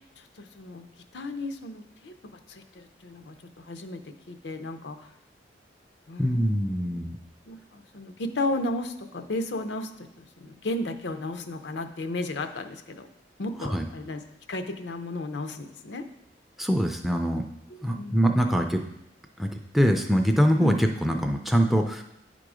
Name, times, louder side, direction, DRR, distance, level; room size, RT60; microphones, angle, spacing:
voice 1, 0.4-0.9 1.1-2.1 2.5-5.1 6.1-7.0 7.5-13.1 13.4-14.2 14.5-16.0 17.7-18.6 20.6-20.8, left 2 dB, 75° left, 8 dB, 0.6 m, -34 dB
voice 2, 6.2-7.2 13.6-13.8 16.6-17.4 17.8-18.8 19.4-22.0, equal, ahead, 3 dB, 0.4 m, -23 dB
9.4 x 3.8 x 4.9 m, 0.82 s
head